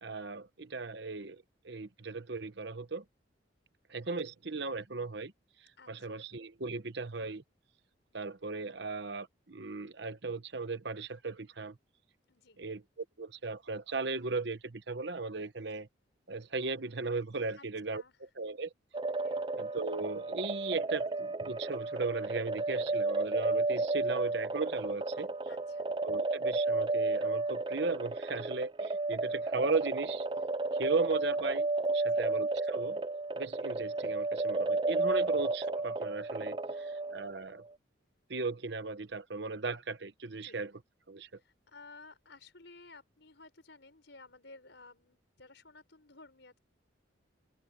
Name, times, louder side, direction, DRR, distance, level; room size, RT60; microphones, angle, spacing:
voice 1, 0.0-3.0 3.9-5.3 5.9-7.4 8.1-11.8 12.6-15.9 16.3-18.0 18.4-18.7 19.6-25.3 26.0-30.3 30.7-31.7 31.9-33.0 33.4-37.6 38.3-40.7 41.1-41.3, right 3 dB, 60° right, 1.1 m, -37 dB
voice 2, 5.8-6.2 12.3-12.6 17.6-17.7 17.9-18.2 19.2-19.5 25.5-25.9 32.0-32.3 35.2-35.3 36.7-37.0 40.4-40.6 41.4-46.6, left 3 dB, 65° left, 5.4 m, -55 dB
sound 1, 18.9-37.4, right 3 dB, 25° right, 0.5 m, -32 dB
head